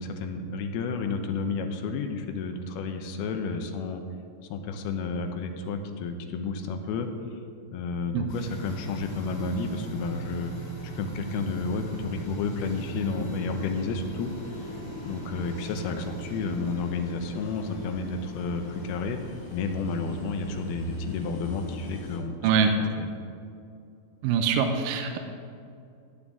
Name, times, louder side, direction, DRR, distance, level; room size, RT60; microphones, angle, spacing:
voice 1, 0.0-4.0 4.5-7.4 7.7-10.5 11.0-14.3 14.6-14.8 15.0-19.2 19.5-22.3 22.8-23.1, left 4 dB, 80° left, 6 dB, 2.7 m, -31 dB
sound 1, 8.3-22.2, right 1 dB, 55° left, 2.7 m, -39 dB
voice 2, 24.2-25.2, right 7 dB, 80° right, 5 dB, 2.0 m, -23 dB
15.5 x 8.8 x 3.6 m, 2.5 s
omnidirectional pair, 4.5 m